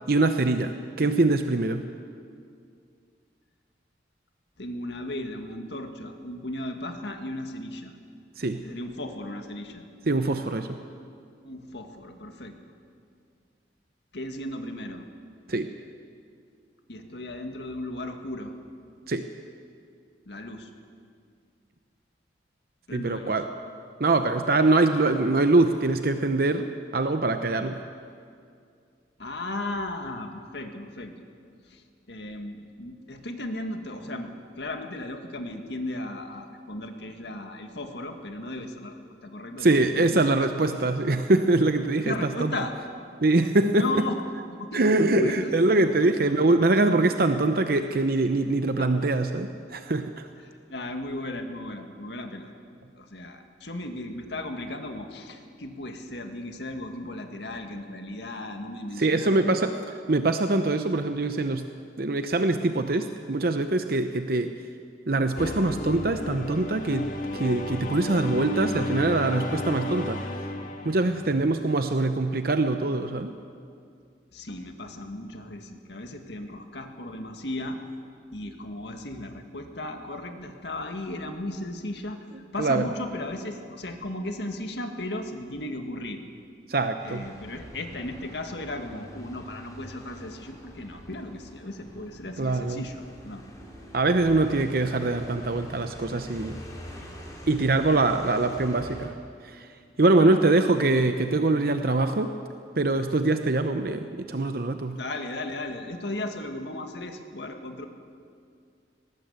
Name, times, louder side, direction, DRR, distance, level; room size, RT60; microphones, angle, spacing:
voice 1, 0.1-1.8 8.4-8.6 10.1-10.8 15.5-15.7 19.1-19.3 22.9-23.4 24.0-26.7 26.9-27.8 39.6-42.5 43.2-43.9 44.7-50.3 59.0-59.8 60.1-61.6 62.0-64.5 65.1-67.1 67.3-70.2 70.8-73.3 82.6-82.9 86.7-87.2 92.4-92.8 93.9-96.6 97.5-99.1 99.5-99.7 100.0-102.3 102.8-104.9, right 2 dB, 55° right, 7 dB, 0.8 m, -23 dB
voice 2, 4.6-7.9 8.6-9.8 11.4-12.6 14.1-15.0 16.9-18.5 20.3-20.7 22.9-23.4 29.2-31.1 31.7-40.4 42.0-42.7 43.7-44.2 44.6-45.5 46.0-46.2 48.8-48.9 50.4-52.5 53.0-59.6 74.3-77.8 78.3-82.2 82.5-86.2 87.0-93.4 100.0-100.5 104.9-107.9, left 1 dB, 70° left, 5 dB, 1.9 m, -36 dB
sound 1, 65.4-71.8, left 1 dB, 45° left, 1.6 m, -33 dB
sound 2, 87.0-99.1, equal, 20° left, 3.4 m, -45 dB
19.0 x 17.5 x 8.2 m, 2.3 s
head